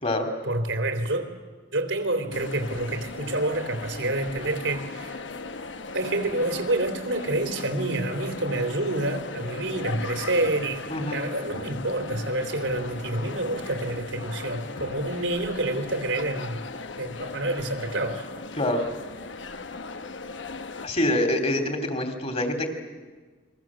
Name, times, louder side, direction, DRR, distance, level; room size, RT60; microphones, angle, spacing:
voice 1, 0.4-1.3 1.7-5.2 5.9-10.8 11.1-16.6 17.0-18.3, right 2 dB, 90° right, 6 dB, 3.4 m, -28 dB
sound 1, 2.3-20.9, left 3 dB, 80° left, 1.1 m, -37 dB
voice 2, 20.8-22.7, left 1 dB, 35° left, 5 dB, 3.3 m, -25 dB
29.0 x 23.0 x 7.6 m, 1.4 s
head